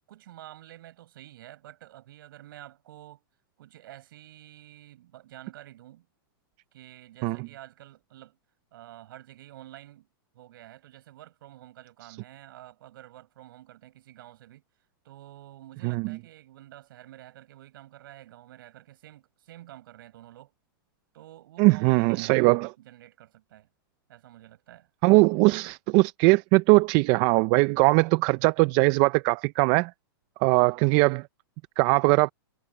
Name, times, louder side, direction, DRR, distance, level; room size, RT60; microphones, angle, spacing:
voice 1, 0.1-3.2 3.6-6.1 6.7-8.4 8.7-10.1 10.3-14.6 15.0-20.5 21.1-23.7 24.1-24.9 30.5-30.8, right 14 dB, 65° right, 6.6 m, -49 dB
voice 2, 15.8-16.2 21.6-22.7 25.0-29.9 30.4-31.2 31.8-32.3, right 25 dB, 35° right, 0.4 m, -21 dB
supercardioid pair, 150°, 12 cm